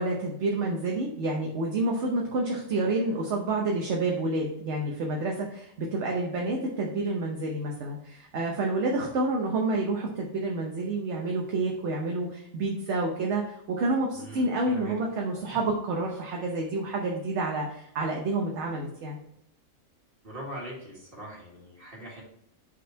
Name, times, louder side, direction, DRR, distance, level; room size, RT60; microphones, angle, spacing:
voice 1, 0.0-19.2, right 2 dB, 60° right, 0 dB, 1.1 m, -29 dB
voice 2, 14.1-15.0 20.2-22.2, right 1 dB, 40° right, -3 dB, 2.0 m, -41 dB
5.3 x 4.2 x 4.4 m, 0.76 s
omnidirectional pair, 1.4 m